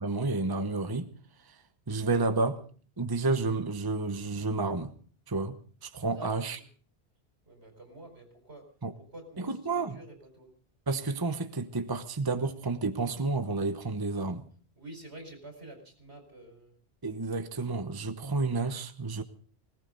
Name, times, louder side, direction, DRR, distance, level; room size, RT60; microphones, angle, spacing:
voice 1, 0.0-1.1 1.5-1.6 1.9-2.6 3.0-4.9 5.3-5.6 5.8-6.6 8.8-8.9 9.4-10.0 10.9-14.5 17.0-19.2, right 3 dB, 20° right, 9 dB, 0.9 m, -30 dB
voice 2, 6.1-6.6 7.4-8.6 9.0-10.5 14.8-16.7, right 1 dB, 75° right, 4 dB, 5.0 m, -48 dB
20.0 x 18.0 x 3.9 m, 0.43 s
omnidirectional pair, 1.1 m